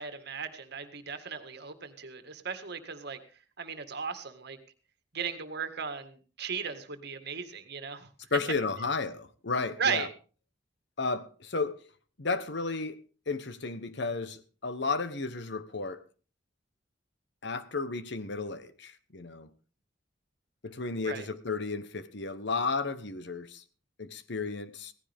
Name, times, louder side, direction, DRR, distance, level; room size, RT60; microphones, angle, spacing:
voice 1, 0.0-3.2 3.6-4.6 5.1-8.1 9.8-10.1 21.1-21.3, right 6 dB, 60° right, 1.9 m, -36 dB
voice 2, 8.3-10.1 11.0-11.9 12.2-13.0 13.3-16.0 17.4-19.5 20.6-23.6 24.0-24.9, left 4 dB, 65° left, 1.2 m, -33 dB
17.5 x 15.0 x 3.6 m
head